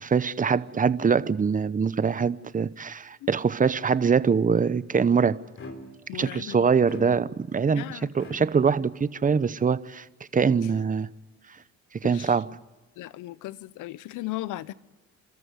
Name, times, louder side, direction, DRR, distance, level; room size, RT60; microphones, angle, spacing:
voice 1, 0.0-5.4 6.1-10.1 10.3-11.1 11.9-12.5, right 6 dB, 25° right, 0.8 m, -23 dB
sound 1, 5.6-6.1 6.9-7.5 8.2-8.4, left 1 dB, 45° left, 3.5 m, -41 dB
voice 2, 6.1-6.7 7.7-8.1 12.0-12.3 13.0-14.7, left 16 dB, 90° left, 0.7 m, -36 dB
29.5 x 13.5 x 9.4 m
cardioid pair, 90°, 30 cm